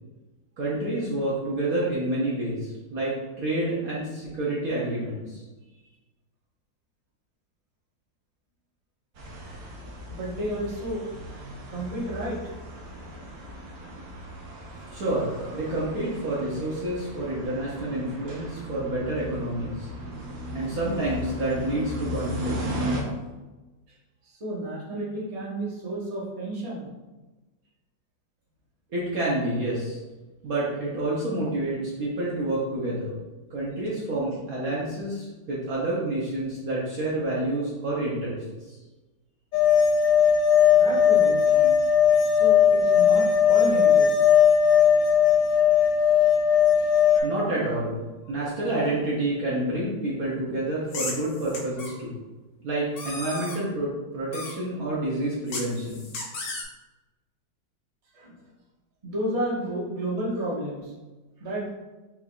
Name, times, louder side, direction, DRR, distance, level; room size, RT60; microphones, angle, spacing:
voice 1, 0.6-5.4 14.9-19.9 20.5-22.6 28.9-30.0 30.4-33.1 33.5-38.8 47.2-48.0 48.3-52.2 52.6-56.1, right 1 dB, 60° right, -6 dB, 1.2 m, -28 dB
sound 1, 9.1-23.0, right 1 dB, 90° right, 1.7 m, -36 dB
voice 2, 10.1-11.0 11.7-12.5 13.0-13.1 14.9-15.0 24.2-26.9 40.6-41.8 42.4-44.1 47.1-47.5 48.3-48.5 58.1-58.4 59.0-60.9 61.4-61.7, right 1 dB, 25° right, -6 dB, 1.0 m, -32 dB
sound 2, 39.5-47.2, left 7 dB, 85° left, 0.7 m, -18 dB
sound 3, 50.9-51.9 52.9-53.6 54.3-54.5 55.5-56.6, left 3 dB, 55° left, 0.9 m, -35 dB
5.7 x 3.5 x 2.4 m, 1.2 s
omnidirectional pair, 2.0 m